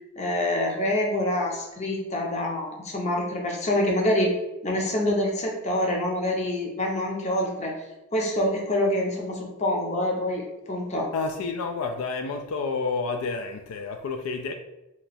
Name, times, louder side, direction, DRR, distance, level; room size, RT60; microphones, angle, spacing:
voice 1, 0.2-4.3 4.6-7.7 8.1-11.1, left 1 dB, 30° left, 0 dB, 0.6 m, -26 dB
voice 2, 11.1-14.5, left 4 dB, 75° left, 5 dB, 0.3 m, -29 dB
2.9 x 2.3 x 4.1 m, 0.95 s
head